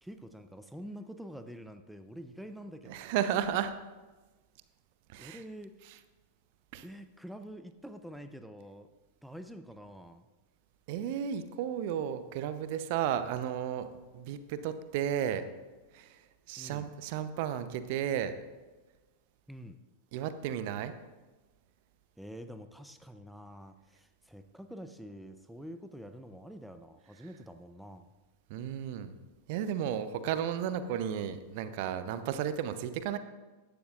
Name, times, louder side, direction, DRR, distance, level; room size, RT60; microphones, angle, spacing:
voice 1, 0.0-3.0 5.2-5.7 6.7-8.9 9.2-10.3 16.6-16.9 19.5-19.8 22.2-28.1, equal, ahead, 9 dB, 0.6 m, -47 dB
voice 2, 2.9-3.7 5.1-5.4 6.7-6.8 10.9-13.9 14.1-15.4 15.9-16.2 16.5-18.3 20.1-20.9 28.5-29.2 29.5-33.2, right 9 dB, 50° right, 12 dB, 0.8 m, -33 dB
16.5 x 11.5 x 2.5 m, 1.2 s
figure-of-eight pair, 90°, 0 cm